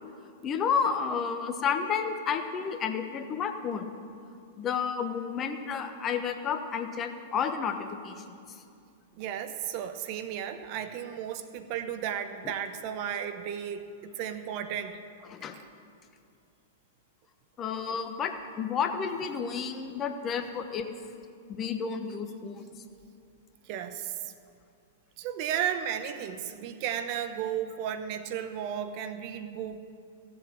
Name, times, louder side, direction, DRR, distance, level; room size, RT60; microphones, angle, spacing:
voice 1, 0.4-3.9 4.6-8.4 12.4-12.5 15.3-15.6 17.6-20.9 21.5-22.7, left 6 dB, 30° left, 7 dB, 1.1 m, -31 dB
voice 2, 9.2-15.0 15.5-15.6 19.5-19.6 23.7-24.3 25.2-30.0, right 9 dB, 45° right, 9 dB, 0.9 m, -34 dB
16.0 x 7.9 x 7.6 m, 2.4 s
figure-of-eight pair, 100°, 0 cm